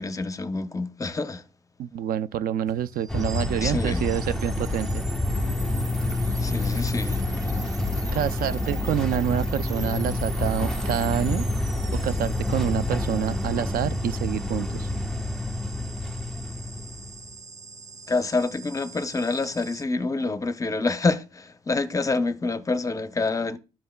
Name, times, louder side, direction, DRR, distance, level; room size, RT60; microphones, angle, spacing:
voice 1, 0.0-1.4 3.6-4.1 6.4-7.2 18.1-23.6, left 3 dB, 20° left, 0.7 m, -27 dB
voice 2, 1.8-5.0 8.1-11.5 12.0-14.9, right 10 dB, 60° right, 0.4 m, -27 dB
sound 1, 2.7-19.8, right 3 dB, 20° right, 0.7 m, -42 dB
sound 2, 3.1-17.3, left 2 dB, 5° left, 1.0 m, -28 dB
13.5 x 5.4 x 2.2 m
cardioid pair, 110°, 17 cm